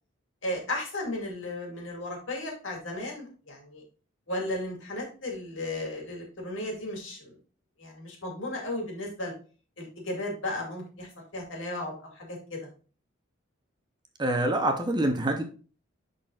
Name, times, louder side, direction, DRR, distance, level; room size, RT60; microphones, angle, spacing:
voice 1, 0.4-3.8 4.3-7.4 7.8-9.3 9.8-12.6, left 1 dB, 70° left, 0 dB, 2.3 m, -35 dB
voice 2, 14.2-15.4, right 1 dB, 20° right, 6 dB, 0.7 m, -25 dB
10.5 x 4.0 x 2.4 m, 0.38 s
head